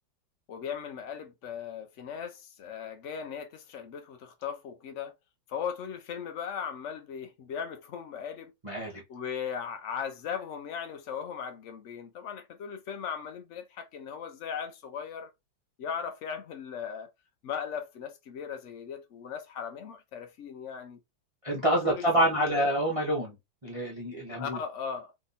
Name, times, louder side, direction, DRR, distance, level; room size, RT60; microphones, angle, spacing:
voice 1, 0.5-5.1 5.5-8.5 8.9-15.3 15.8-17.1 17.4-21.0 21.8-22.7 24.4-25.1, left 7 dB, 85° left, 0.6 m, -38 dB
voice 2, 8.6-9.0 21.4-23.4 23.6-24.6, right 1 dB, 25° right, 0.7 m, -27 dB
3.4 x 2.9 x 4.1 m
omnidirectional pair, 2.1 m